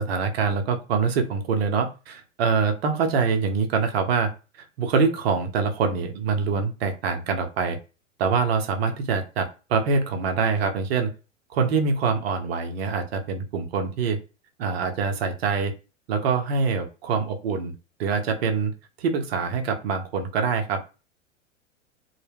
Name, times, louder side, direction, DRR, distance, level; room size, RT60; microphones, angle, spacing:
voice 1, 0.0-4.3 4.6-7.8 8.2-11.1 11.5-14.2 14.6-15.7 16.1-17.7 18.0-18.7 19.0-20.8, right 5 dB, 50° right, 5 dB, 0.7 m, -24 dB
2.1 x 2.0 x 3.3 m, 0.32 s
figure-of-eight pair, 95°, 39 cm